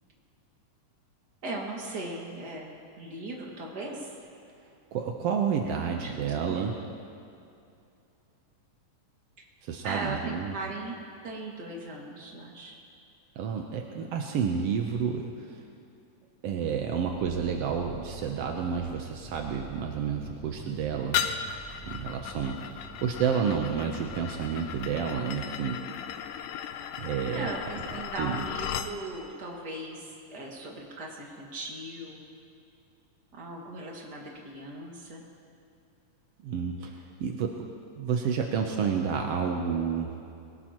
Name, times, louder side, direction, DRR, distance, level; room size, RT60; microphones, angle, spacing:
voice 1, 1.4-4.2 5.7-6.7 9.4-9.5 9.8-10.9 11.2-12.8 27.3-32.2 33.3-35.3, right 2 dB, 35° right, -2 dB, 2.3 m, -38 dB
voice 2, 4.9-6.8 9.6-10.5 13.4-15.6 16.4-21.3 21.8-25.8 27.0-27.5 28.2-28.4 36.4-37.7 37.9-40.1, right 6 dB, 75° right, 2 dB, 1.4 m, -30 dB
sound 1, 17.0-25.3, right 2 dB, 10° left, 0.4 m, -47 dB
sound 2, 21.1-28.9, left 9 dB, 85° left, 2.2 m, -36 dB
22.0 x 19.5 x 3.0 m, 2.6 s
omnidirectional pair, 3.8 m